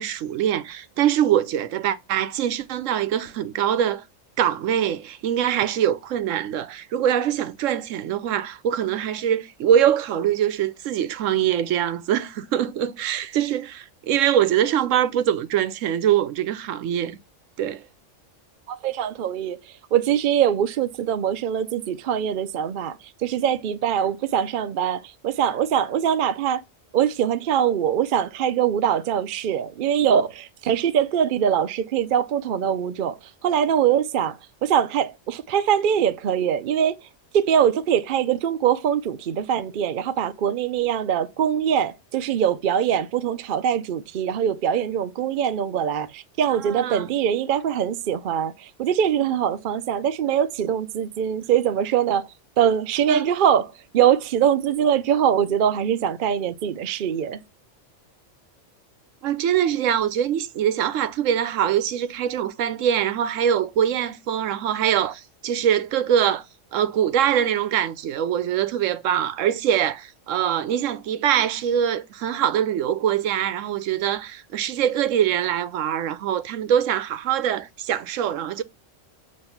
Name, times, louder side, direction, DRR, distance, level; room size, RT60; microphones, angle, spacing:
voice 1, 0.0-4.0 4.4-17.2 17.6-17.8 46.7-47.1 53.1-53.2 59.2-66.4 66.7-78.6, right 10 dB, 80° right, 1.0 m, -23 dB
voice 2, 18.7-26.6 26.9-57.4, right 9 dB, 60° right, 0.5 m, -23 dB
7.9 x 3.1 x 5.7 m
omnidirectional pair, 1.3 m